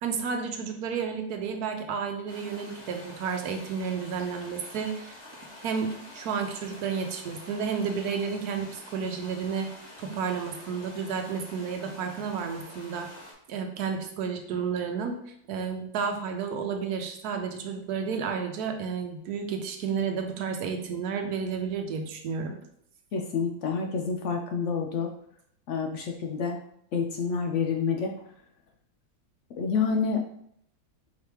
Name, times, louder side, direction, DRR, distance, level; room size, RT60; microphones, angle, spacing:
voice 1, 0.0-5.2 5.6-9.7 10.0-13.1 13.5-22.6, right 6 dB, 75° right, 5 dB, 1.2 m, -31 dB
sound 1, 2.3-13.3, left 1 dB, 30° left, 0.9 m, -47 dB
voice 2, 23.1-25.1 25.7-26.6 26.9-28.1 29.6-30.2, left 5 dB, 70° left, 3 dB, 0.7 m, -28 dB
4.7 x 3.4 x 3.0 m, 0.71 s
omnidirectional pair, 1.7 m